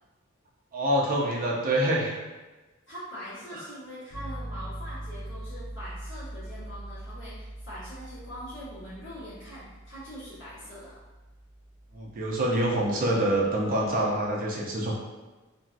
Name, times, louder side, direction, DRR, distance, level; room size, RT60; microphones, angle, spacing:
voice 1, 0.7-2.2 3.5-3.6 11.9-15.0, right 1 dB, 45° right, -3 dB, 0.6 m, -26 dB
voice 2, 2.9-11.0, equal, 60° left, -11 dB, 1.4 m, -43 dB
sound 1, 4.1-14.0, right 1 dB, 85° left, 1.0 m, -42 dB
3.0 x 2.8 x 2.5 m, 1.2 s
head